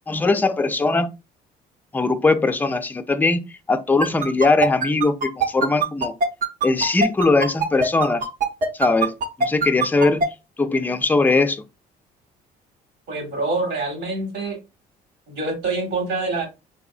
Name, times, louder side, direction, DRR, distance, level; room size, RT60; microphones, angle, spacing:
voice 1, 0.1-1.1 1.9-3.4 3.7-6.2 6.6-8.3 8.8-10.3 10.6-11.6, left 3 dB, 10° left, 0.4 m, -20 dB
sound 1, 4.0-10.3, right 4 dB, 50° right, 0.8 m, -21 dB
voice 2, 13.1-14.6 15.3-16.5, right 3 dB, 85° right, 1.7 m, -25 dB
3.6 x 2.7 x 2.4 m
cardioid pair, 110°, 17 cm